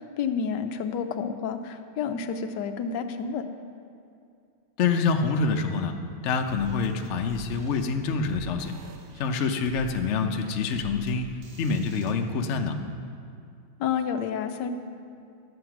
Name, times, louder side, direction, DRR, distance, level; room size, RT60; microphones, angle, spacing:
voice 1, 0.0-3.5 13.8-14.7, left 6 dB, 70° left, 8 dB, 1.2 m, -30 dB
voice 2, 4.8-5.9 6.2-8.7 9.2-12.8, left 4 dB, 90° left, 5 dB, 0.6 m, -26 dB
sound 1, 6.5-12.1, equal, 60° right, 1.4 m, -45 dB
12.0 x 7.9 x 5.9 m, 2.4 s
omnidirectional pair, 2.2 m